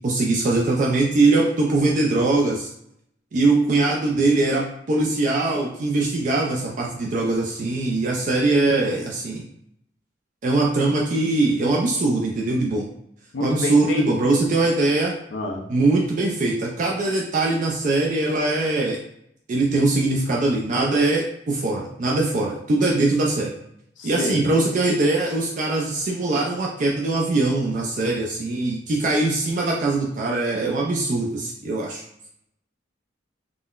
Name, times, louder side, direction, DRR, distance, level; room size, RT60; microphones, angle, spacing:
voice 1, 0.0-2.7 3.3-9.4 10.4-12.9 13.4-15.1 15.7-19.0 19.5-23.5 24.0-32.0, right 2 dB, 40° right, -1 dB, 0.3 m, -21 dB
voice 2, 13.3-14.0 15.3-15.7 24.0-24.5, left 1 dB, 80° left, 1 dB, 0.6 m, -28 dB
3.7 x 2.0 x 2.3 m, 0.75 s
head